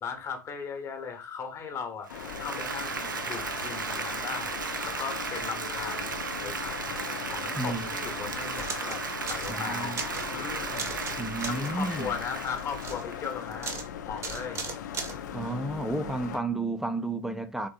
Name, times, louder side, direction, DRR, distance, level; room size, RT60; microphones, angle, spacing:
voice 1, 0.0-2.1 2.4-4.6 4.8-6.2 6.4-7.0 7.2-10.0 10.3-10.9 11.5-13.8 14.1-14.6, left 6 dB, 25° left, 0.9 m, -37 dB
Applause, 2.0-13.8, right 4 dB, 75° right, 0.6 m, -35 dB
sound 1, 2.1-16.4, left 9 dB, 60° left, 0.4 m, -39 dB
voice 2, 7.5-7.9 9.5-10.0 11.2-12.1 15.3-17.7, right 2 dB, 5° right, 0.4 m, -32 dB
sound 2, 8.6-9.0 9.3-9.6 9.8-10.3 10.7-11.1 11.4-11.8 12.5-13.0 13.6-13.9 14.2-15.2, right 4 dB, 25° right, 0.8 m, -36 dB
3.9 x 3.4 x 2.5 m
figure-of-eight pair, 85°, 11 cm